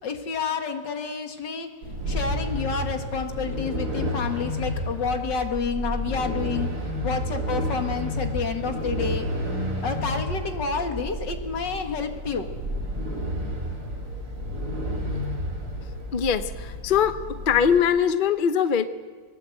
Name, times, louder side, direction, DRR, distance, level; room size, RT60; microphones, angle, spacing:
voice 1, 0.0-1.7 2.1-6.7 7.0-9.3 9.8-12.5, left 5 dB, 85° left, 5 dB, 2.5 m, -29 dB
sound 1, 1.8-17.8, equal, 60° right, 3.9 m, -31 dB
voice 2, 16.1-17.2 17.5-18.8, left 7 dB, 40° left, 10 dB, 0.8 m, -21 dB
22.5 x 19.5 x 7.9 m, 1.5 s
omnidirectional pair, 1.9 m